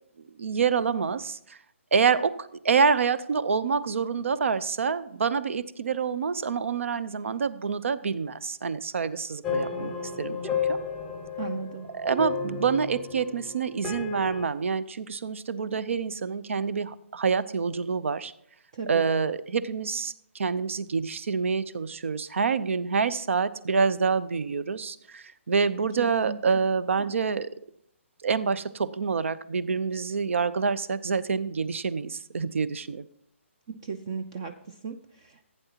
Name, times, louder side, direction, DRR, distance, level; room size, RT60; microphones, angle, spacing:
voice 1, 0.4-1.6 1.9-9.9 10.2-10.8 11.9-18.3 18.9-27.5 28.2-33.0, right 5 dB, 65° right, 16 dB, 0.7 m, -27 dB
sound 1, 9.4-14.5, left 5 dB, 5° left, 0.8 m, -32 dB
voice 2, 11.4-11.9 18.7-19.0 26.0-26.4 33.7-35.5, right 5 dB, 25° right, 7 dB, 0.5 m, -36 dB
15.5 x 9.1 x 2.9 m, 0.71 s
hypercardioid pair, 170°, 7 cm